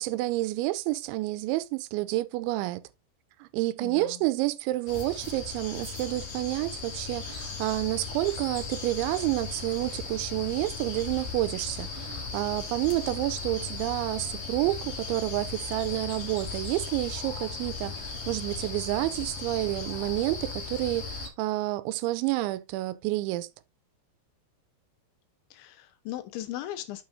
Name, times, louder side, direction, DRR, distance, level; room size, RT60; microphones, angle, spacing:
voice 1, 0.0-2.8 3.4-23.5, right 18 dB, 90° right, 3.0 m, -29 dB
voice 2, 3.8-4.2 25.5-27.0, left 13 dB, 85° left, 3.3 m, -38 dB
sound 1, 4.9-21.3, left 5 dB, 45° left, 2.4 m, -37 dB
8.7 x 7.6 x 2.6 m
omnidirectional pair, 5.2 m